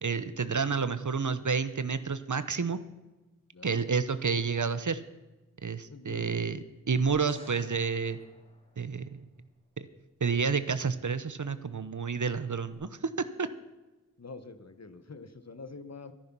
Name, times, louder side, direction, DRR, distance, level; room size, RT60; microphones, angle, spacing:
voice 1, 0.0-2.8 3.6-5.0 5.6-6.6 6.9-8.2 8.8-9.2 9.8-9.9 10.2-13.1 13.4-13.5, right 5 dB, 60° right, 13 dB, 0.8 m, -30 dB
voice 2, 5.9-6.4 14.2-16.1, left 3 dB, 50° left, 12 dB, 1.0 m, -45 dB
sound 1, 7.1-9.4 12.7-12.8, left 1 dB, 15° left, 3.0 m, -56 dB
13.5 x 11.0 x 6.0 m, 1.1 s
wide cardioid pair, 50°, 33 cm